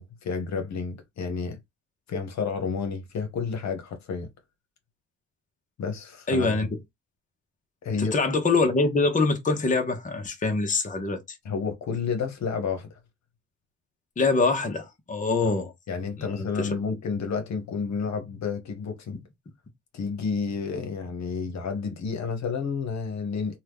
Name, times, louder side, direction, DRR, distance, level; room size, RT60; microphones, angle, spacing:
voice 1, 0.0-1.6 2.1-4.3 5.8-6.7 7.8-8.2 11.4-13.0 15.4-15.5 15.9-19.2 19.9-23.6, left 5 dB, 65° left, 1.0 m, -30 dB
voice 2, 6.3-6.7 8.0-11.2 14.2-15.7 16.4-16.8, left 3 dB, 25° left, 0.9 m, -24 dB
2.9 x 2.3 x 3.4 m
cardioid pair, 90°, 30 cm